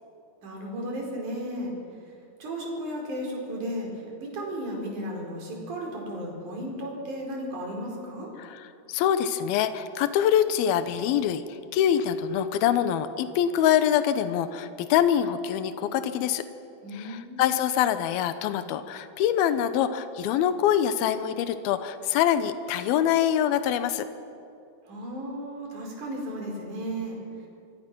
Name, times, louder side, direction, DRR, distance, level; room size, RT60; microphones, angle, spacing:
voice 1, 0.4-1.8 2.4-8.3 16.8-17.5 24.9-27.2, equal, 50° right, 0 dB, 5.7 m, -34 dB
voice 2, 8.4-11.4 11.7-16.4 16.9-24.1, left 10 dB, 80° left, 11 dB, 2.7 m, -24 dB
25.5 x 23.0 x 6.1 m, 2.6 s
omnidirectional pair, 4.5 m